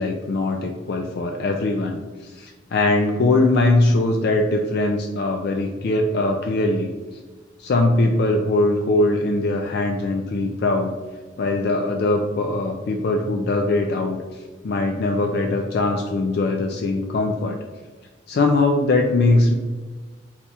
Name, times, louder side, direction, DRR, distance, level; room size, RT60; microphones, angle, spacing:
voice 1, 0.0-6.9 7.6-10.9 11.4-17.6 18.3-19.5, left 2 dB, 55° left, 3 dB, 0.3 m, -21 dB
4.2 x 2.3 x 4.1 m, 1.3 s
head